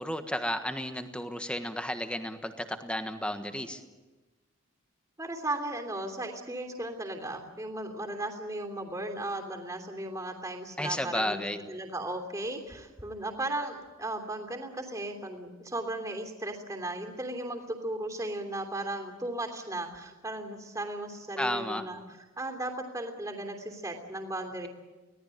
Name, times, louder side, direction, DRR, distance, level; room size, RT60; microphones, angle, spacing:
voice 1, 0.0-3.8 10.8-11.6 21.4-21.8, left 1 dB, 5° left, 7 dB, 1.4 m, -33 dB
voice 2, 5.2-22.0 22.4-24.7, right 1 dB, 15° right, 3 dB, 3.1 m, -36 dB
25.0 x 18.0 x 9.1 m, 1.2 s
head